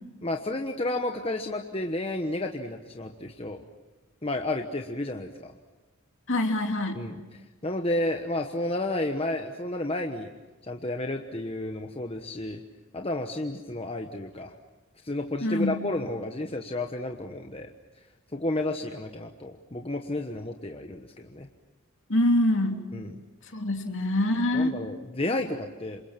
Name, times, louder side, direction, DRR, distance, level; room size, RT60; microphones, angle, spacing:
voice 1, 0.2-3.6 4.2-5.5 6.9-10.3 10.6-12.6 12.9-14.5 15.0-17.7 18.3-21.5 22.9-23.2 24.5-26.0, left 1 dB, 25° left, 4 dB, 1.2 m, -31 dB
voice 2, 6.3-7.0 15.4-15.8 22.1-22.9 23.5-24.7, left 1 dB, 55° left, 4 dB, 2.9 m, -25 dB
28.5 x 26.5 x 6.0 m, 1.2 s
head